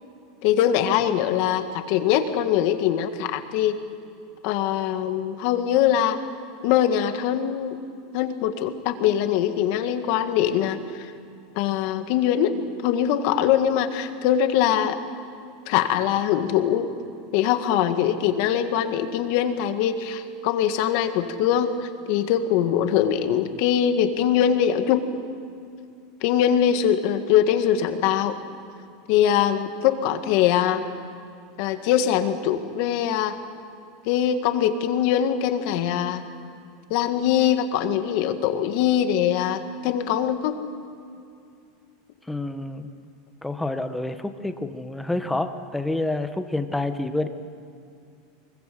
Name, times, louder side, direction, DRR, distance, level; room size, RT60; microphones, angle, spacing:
voice 1, 0.4-3.8 4.4-6.2 6.6-7.8 8.1-11.1 11.6-15.0 15.7-16.9 17.3-25.0 26.2-28.4 29.1-30.8 31.6-33.4 34.1-36.2 36.9-40.6, left 10 dB, 60° left, 8 dB, 1.9 m, -22 dB
voice 2, 42.3-42.9 43.4-47.3, left 2 dB, 5° left, 8 dB, 1.3 m, -28 dB
24.0 x 21.5 x 7.8 m, 2.4 s
supercardioid pair, 135°, 0 cm